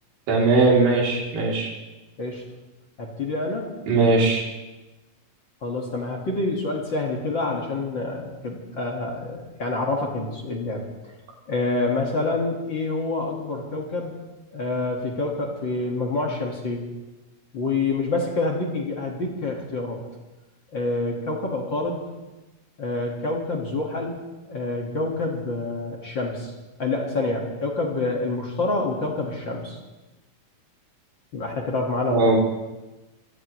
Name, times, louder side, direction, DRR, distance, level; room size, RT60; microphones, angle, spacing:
voice 1, 0.3-1.7 3.9-4.4 32.1-32.4, right 3 dB, 90° right, -3 dB, 4.9 m, -19 dB
voice 2, 3.0-3.7 5.6-10.8 11.5-14.1 14.5-16.9 17.5-20.0 20.7-22.1 22.8-26.5 26.8-29.8 31.3-32.3, left 2 dB, 40° left, -1 dB, 2.0 m, -27 dB
24.5 x 17.5 x 3.1 m, 1.1 s
omnidirectional pair, 3.9 m